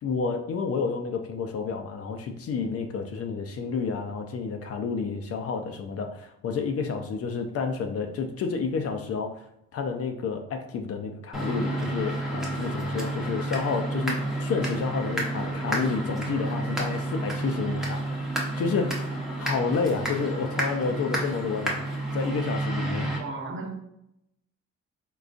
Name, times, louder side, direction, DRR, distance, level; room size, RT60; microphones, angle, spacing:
voice 1, 0.0-9.3 9.7-18.0 18.6-19.1 19.4-21.8 22.1-23.1, left 5 dB, 50° left, 5 dB, 0.5 m, -30 dB
sound 1, 11.3-23.2, right 1 dB, ahead, 0.7 m, -30 dB
voice 2, 23.1-23.8, right 3 dB, 40° right, -1 dB, 0.8 m, -35 dB
3.7 x 2.3 x 2.4 m, 0.79 s
cardioid pair, 90°, 30 cm